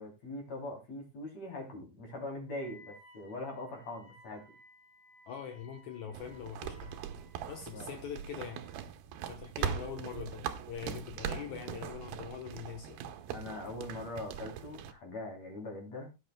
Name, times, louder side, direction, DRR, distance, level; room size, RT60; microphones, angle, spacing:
voice 1, 0.0-4.4 7.7-7.9 13.3-16.1, left 2 dB, 40° left, 2 dB, 4.0 m, -42 dB
Wind instrument woodwind instrument, 2.5-8.9, left 2 dB, 60° left, 4.9 m, -60 dB
voice 2, 5.3-6.9 7.5-8.6 9.3-13.0, left 7 dB, 85° left, 5 dB, 1.6 m, -43 dB
sound 1, 6.1-14.9, right 9 dB, 70° right, 2.6 m, -41 dB
17.0 x 9.6 x 2.2 m, 0.24 s
omnidirectional pair, 5.0 m